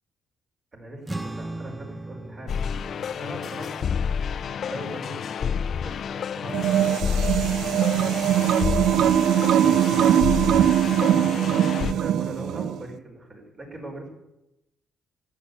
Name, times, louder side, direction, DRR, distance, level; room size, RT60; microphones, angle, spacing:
voice 1, 0.7-2.9 3.2-3.9 4.6-9.0 9.5-10.8 11.7-14.1, right 1 dB, 35° right, 1 dB, 5.8 m, -41 dB
sound 1, 1.0-7.7, right 2 dB, 15° right, 0.7 m, -40 dB
sound 2, 2.5-11.9, left 7 dB, 60° left, 0.5 m, -29 dB
sound 3, 6.5-12.8, right 10 dB, 75° right, 0.6 m, -21 dB
13.0 x 10.5 x 8.4 m, 0.89 s
cardioid pair, 90°, 0 cm